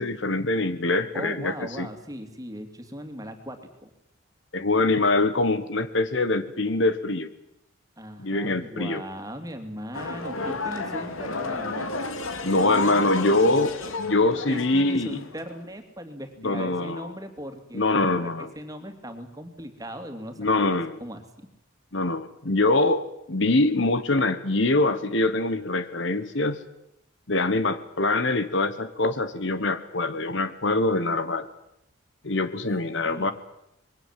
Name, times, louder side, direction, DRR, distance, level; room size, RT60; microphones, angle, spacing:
voice 1, 0.0-1.9 4.5-7.3 8.2-9.0 12.4-13.7 14.0-15.2 16.4-17.1 17.7-18.5 20.4-20.9 21.9-26.6 27.3-31.5 32.2-33.3, left 2 dB, 60° left, 13 dB, 1.3 m, -24 dB
voice 2, 1.1-3.9 8.0-11.9 12.5-13.7 14.5-21.2 33.0-33.3, equal, 15° right, 6 dB, 2.8 m, -38 dB
sound 1, 9.9-15.7, left 3 dB, 75° left, 2.6 m, -32 dB
25.5 x 22.0 x 7.6 m, 0.82 s
head